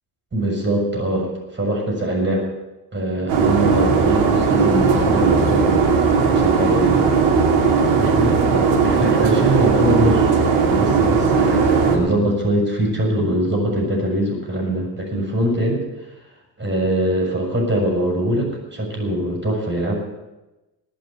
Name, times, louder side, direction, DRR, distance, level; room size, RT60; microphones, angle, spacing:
voice 1, 0.3-2.5 2.9-5.8 6.2-7.0 7.9-16.1 16.6-19.9, right 1 dB, 25° right, 0 dB, 6.8 m, -22 dB
sound 1, 3.3-12.0, right 5 dB, 90° right, 2.8 m, -17 dB
19.5 x 6.4 x 9.1 m, 1.0 s
supercardioid pair, 75°, 42 cm